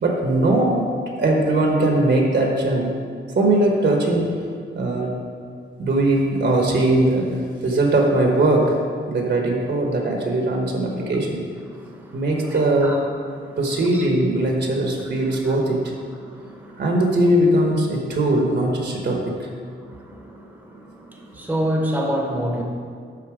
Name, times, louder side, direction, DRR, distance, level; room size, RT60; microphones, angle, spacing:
voice 1, 0.0-0.8 1.2-2.9 3.3-4.3 4.7-5.2 5.8-7.3 7.6-8.7 9.1-11.4 12.1-12.9 13.6-15.9 16.8-19.5, right 1 dB, 55° right, 0 dB, 1.2 m, -20 dB
voice 2, 11.7-13.7 13.9-14.1 15.3-15.6 16.1-17.0 19.8-22.6, equal, 10° right, 0 dB, 1.0 m, -29 dB
12.0 x 4.1 x 4.9 m, 2.2 s
wide cardioid pair, 165°, 21 cm